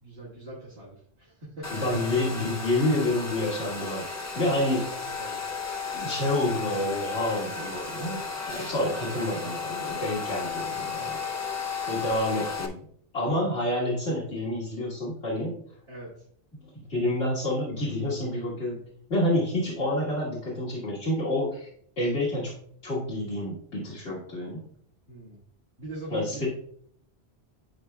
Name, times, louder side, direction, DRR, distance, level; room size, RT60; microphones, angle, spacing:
voice 1, 0.0-1.8 4.9-5.4 12.1-12.2 15.9-16.1 25.1-25.4 25.8-26.5, right 2 dB, 70° right, -8 dB, 1.9 m, -42 dB
Domestic sounds home sounds, 1.6-12.7, left 5 dB, 20° left, 0.5 m, -34 dB
voice 2, 1.7-4.0 4.4-4.8 5.9-8.2 8.5-11.2 11.9-12.8 13.1-15.5 16.7-18.8 19.1-21.7 22.0-22.6 22.8-24.6 26.1-26.5, left 1 dB, 90° left, -8 dB, 1.9 m, -28 dB
11.5 x 4.8 x 2.3 m, 0.64 s
omnidirectional pair, 1.1 m